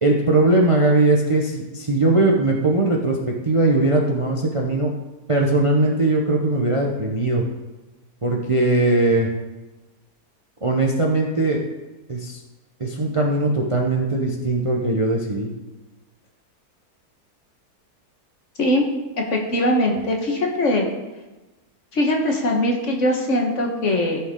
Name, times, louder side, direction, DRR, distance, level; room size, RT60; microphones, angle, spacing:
voice 1, 0.0-4.9 5.3-7.4 8.2-9.3 10.6-11.6 12.1-12.4 12.8-15.5, right 2 dB, 25° right, -1 dB, 0.8 m, -20 dB
voice 2, 19.3-20.8 21.9-24.2, left 1 dB, 50° left, 0 dB, 1.7 m, -21 dB
15.0 x 5.7 x 3.8 m, 1.1 s
omnidirectional pair, 1.6 m